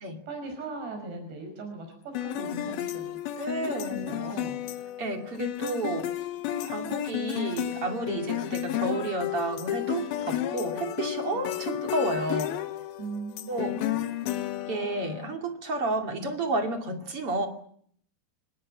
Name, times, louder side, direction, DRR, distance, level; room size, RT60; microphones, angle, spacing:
voice 1, 0.3-4.6 10.7-10.9 11.3-11.5 13.0-14.0, right 3 dB, 85° right, 3 dB, 7.4 m, -40 dB
sound 1, 2.2-15.4, left 12 dB, 70° left, 2.9 m, -32 dB
voice 2, 3.4-4.2 5.0-6.1 6.7-12.5 13.5-13.8 14.6-17.5, right 2 dB, 40° right, 4 dB, 3.1 m, -31 dB
25.0 x 21.0 x 8.8 m, 0.64 s
omnidirectional pair, 4.8 m